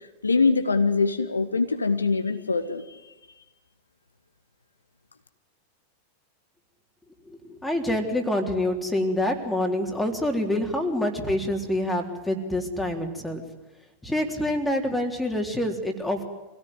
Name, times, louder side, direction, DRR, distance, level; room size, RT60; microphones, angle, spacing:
voice 1, 0.0-3.1, left 4 dB, 75° left, 8 dB, 1.6 m, -24 dB
voice 2, 7.3-13.4 14.0-16.2, left 1 dB, 5° left, 3 dB, 3.8 m, -26 dB
26.0 x 17.0 x 9.7 m, 1.1 s
figure-of-eight pair, 90°, 0 cm